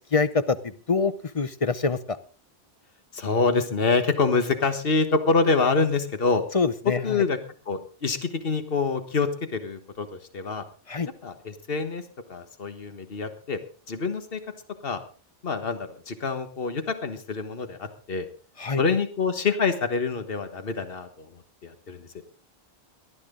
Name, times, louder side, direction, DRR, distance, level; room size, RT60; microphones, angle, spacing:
voice 1, 0.1-2.2 6.5-7.2 10.9-11.1 18.6-18.8, left 4 dB, 35° left, 13 dB, 0.7 m, -25 dB
voice 2, 3.1-6.4 7.0-7.4 7.7-10.6 11.2-12.0 12.3-13.6 13.9-14.4 14.8-15.0 15.4-18.3 18.8-22.1, left 4 dB, 60° left, 9 dB, 1.6 m, -26 dB
18.0 x 12.0 x 3.8 m, 0.38 s
omnidirectional pair, 1.1 m